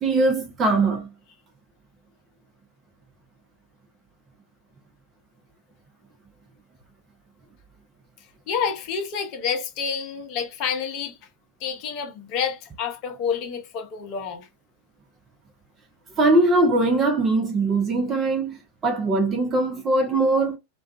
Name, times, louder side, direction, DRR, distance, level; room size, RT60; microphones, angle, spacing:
voice 1, 0.0-1.1 16.2-20.6, right 2 dB, 25° right, 0.6 m, -21 dB
voice 2, 8.5-11.2 11.6-14.5, left 6 dB, 40° left, 0.6 m, -28 dB
2.3 x 2.3 x 2.4 m
figure-of-eight pair, 90°, 0 cm